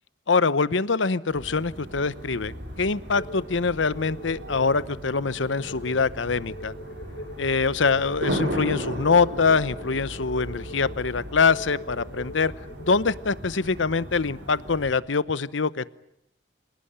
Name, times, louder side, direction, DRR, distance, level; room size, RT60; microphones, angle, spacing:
voice 1, 0.3-2.5 2.8-6.7 7.4-12.5 12.8-15.9, left 4 dB, 90° left, 17 dB, 0.9 m, -24 dB
sound 1, 1.3-14.9, equal, 70° right, 5.8 m, -36 dB
sound 2, 3.1-13.1, equal, 65° left, 4.4 m, -42 dB
27.0 x 18.0 x 10.0 m, 0.80 s
head